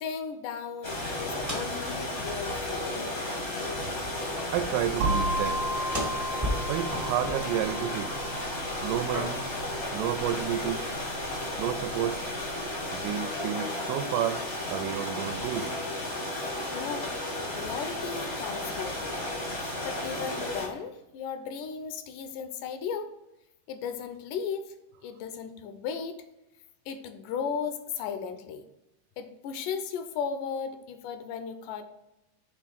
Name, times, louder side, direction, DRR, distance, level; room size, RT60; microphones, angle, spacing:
voice 1, 0.0-3.1 16.6-17.2 17.5-19.3 19.9-23.1 23.7-24.7 25.0-26.2 26.9-28.6 29.2-31.8, left 6 dB, 80° left, 2.1 m, -36 dB
sound 1, 0.8-20.7, left 1 dB, 50° left, 0.7 m, -34 dB
sound 2, 1.2-1.9 2.2-2.3 2.9-3.3 3.6-8.3 8.6-9.6 10.3-11.0, equal, 25° right, 0.6 m, -38 dB
voice 2, 4.5-5.6 6.7-8.1 8.8-9.4 9.9-10.9 11.6-12.2 12.9-15.7, right 11 dB, 85° right, 2.1 m, -31 dB
sound 3, 5.0-12.8, right 1 dB, 65° right, 1.9 m, -35 dB
6.4 x 3.6 x 6.0 m
omnidirectional pair, 3.8 m